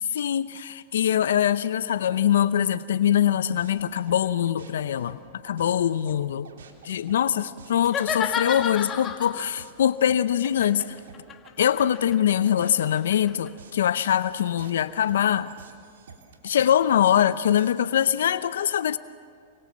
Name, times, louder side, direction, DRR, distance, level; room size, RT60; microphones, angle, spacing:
voice 1, 0.0-6.5 6.8-11.0 11.6-15.5 16.4-19.0, left 10 dB, 80° left, 14 dB, 0.7 m, -23 dB
sound 1, 3.1-18.4, right 5 dB, 85° right, 3.4 m, -49 dB
sound 2, 7.8-9.5 10.4-13.5, left 7 dB, 25° left, 1.9 m, -31 dB
28.5 x 22.5 x 7.5 m, 2.2 s
hypercardioid pair, 125°, 0 cm